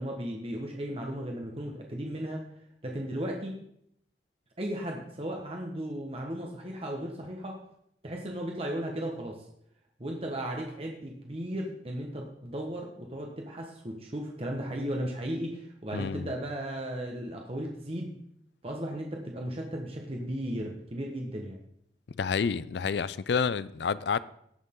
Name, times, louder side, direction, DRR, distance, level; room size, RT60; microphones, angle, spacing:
voice 1, 0.0-2.4 2.8-3.6 4.6-7.6 8.0-9.4 10.0-18.1 18.6-21.6, right 1 dB, 35° right, 1.3 m, -35 dB
voice 2, 15.9-16.3 22.2-24.2, left 5 dB, 70° left, 0.4 m, -29 dB
17.5 x 6.6 x 3.8 m
head